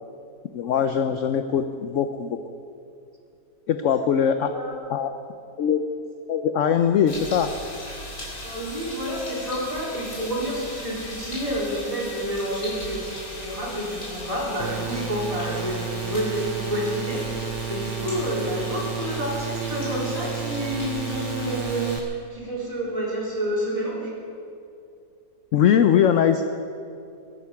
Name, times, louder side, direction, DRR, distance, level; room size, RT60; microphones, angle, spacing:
voice 1, 0.5-2.4 3.7-4.5 4.9-5.1 5.6-5.8 6.3-7.5 25.5-26.4, left 8 dB, 65° left, 8 dB, 0.8 m, -21 dB
sound 1, 7.1-22.0, left 1 dB, 45° left, 4.6 m, -37 dB
voice 2, 8.4-24.1, equal, 20° right, -5 dB, 4.0 m, -29 dB
sound 2, 14.6-22.0, right 8 dB, 90° right, 1.3 m, -32 dB
22.0 x 9.5 x 5.9 m, 2.6 s
omnidirectional pair, 1.8 m